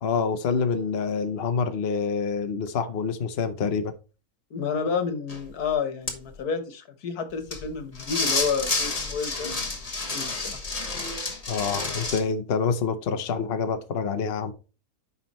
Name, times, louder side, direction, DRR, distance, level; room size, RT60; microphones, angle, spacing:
voice 1, 0.0-3.9 11.5-14.5, left 5 dB, 50° left, 0.9 m, -27 dB
voice 2, 4.5-10.6, left 6 dB, 80° left, 1.7 m, -30 dB
sound 1, 5.3-5.4 6.1-6.2 7.5-7.7 8.0-12.2, left 3 dB, 25° left, 1.3 m, -29 dB
9.7 x 5.4 x 3.0 m
omnidirectional pair, 1.6 m